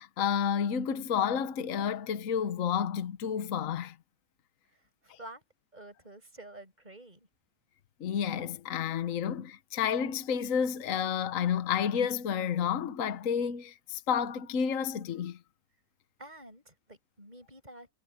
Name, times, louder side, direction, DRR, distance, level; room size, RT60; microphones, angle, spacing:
voice 1, 0.0-3.9 8.0-15.4, left 8 dB, 60° left, 1.3 m, -30 dB
voice 2, 4.7-5.4 5.7-7.3 16.2-17.9, right 1 dB, 25° right, 8.0 m, -49 dB
omnidirectional pair, 1.6 m